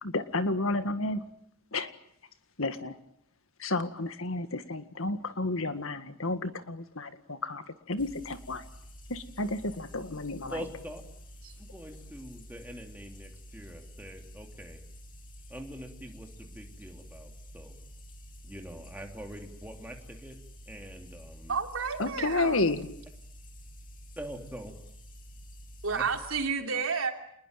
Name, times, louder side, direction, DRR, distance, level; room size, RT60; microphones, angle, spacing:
voice 1, 0.0-1.2 1.7-1.9 2.6-3.0 3.6-8.7 9.1-10.6 22.0-22.9, left 2 dB, 70° left, 10 dB, 1.9 m, -31 dB
sound 1, 8.0-26.5, equal, 35° left, 3.2 m, -49 dB
voice 2, 10.5-11.0 11.6-14.8 15.5-17.8 18.4-20.4 20.7-21.6 24.2-24.7 25.9-26.0, right 1 dB, 10° right, 2 dB, 3.3 m, -44 dB
voice 3, 21.5-22.6 25.8-27.1, right 5 dB, 70° right, 4 dB, 3.2 m, -30 dB
27.5 x 21.0 x 9.2 m, 0.71 s
head